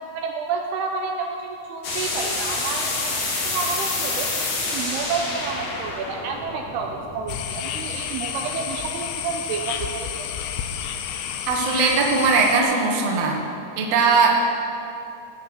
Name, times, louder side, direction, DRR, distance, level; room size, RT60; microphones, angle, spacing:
voice 1, 0.1-4.3 4.7-10.3, right 5 dB, 80° right, 2 dB, 2.5 m, -30 dB
sound 1, 1.8-7.5, left 3 dB, 50° left, 2.1 m, -28 dB
sound 2, 7.3-12.6, left 9 dB, 80° left, 2.6 m, -30 dB
voice 2, 11.5-13.4 13.8-14.3, right 4 dB, 55° right, -1 dB, 1.9 m, -19 dB
16.0 x 5.8 x 8.0 m, 2.7 s
omnidirectional pair, 5.0 m